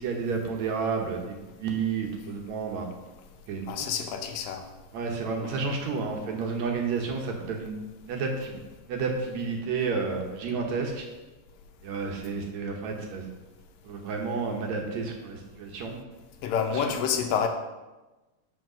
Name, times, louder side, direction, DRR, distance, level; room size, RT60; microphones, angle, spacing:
voice 1, 0.0-2.9 3.5-3.9 4.9-7.8 8.0-8.6 8.9-11.0 11.8-13.2 13.8-16.0 16.7-16.9, right 5 dB, 65° right, 2 dB, 2.1 m, -31 dB
voice 2, 3.7-4.6 5.4-5.6 16.4-17.5, left 7 dB, 90° left, 5 dB, 2.6 m, -28 dB
7.9 x 5.7 x 6.1 m, 1.1 s
omnidirectional pair, 3.8 m